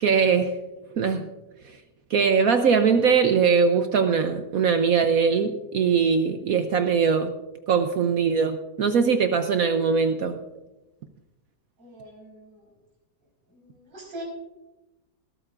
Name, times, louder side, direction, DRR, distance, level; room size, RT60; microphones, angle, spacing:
voice 1, 0.0-0.5 1.0-1.2 2.1-7.3 7.7-10.4, right 6 dB, 60° right, 7 dB, 1.0 m, -21 dB
voice 2, 11.8-12.7 13.5-14.2, right 1 dB, 80° right, -2 dB, 5.7 m, -42 dB
19.5 x 13.0 x 2.5 m, 1.1 s
omnidirectional pair, 1.9 m